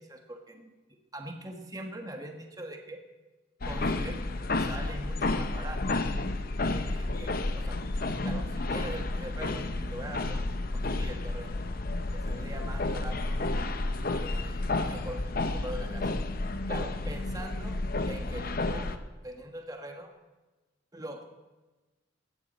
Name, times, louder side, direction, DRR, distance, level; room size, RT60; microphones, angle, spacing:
voice 1, 0.0-3.0 3.6-4.2 4.6-6.0 6.7-7.8 8.2-10.5 10.7-11.5 12.1-13.5 14.1-16.1 16.7-17.8 18.1-18.9 19.2-20.1 20.9-21.3, right 1 dB, 20° right, 3 dB, 1.4 m, -42 dB
sound 1, 3.6-19.0, left 2 dB, 50° left, 0.8 m, -31 dB
17.5 x 13.5 x 4.2 m, 1.2 s
head